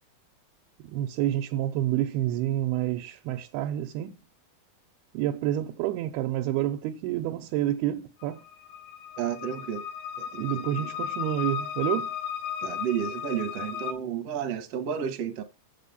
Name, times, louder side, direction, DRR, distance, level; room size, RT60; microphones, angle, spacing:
voice 1, 0.8-4.2 5.1-8.4 10.4-12.1, right 13 dB, 90° right, 2.8 m, -28 dB
sound 1, 8.2-13.9, left 8 dB, 80° left, 3.0 m, -35 dB
voice 2, 9.2-9.8 10.2-10.9 12.6-15.4, right 9 dB, 65° right, 1.6 m, -32 dB
7.7 x 7.5 x 5.5 m
omnidirectional pair, 4.5 m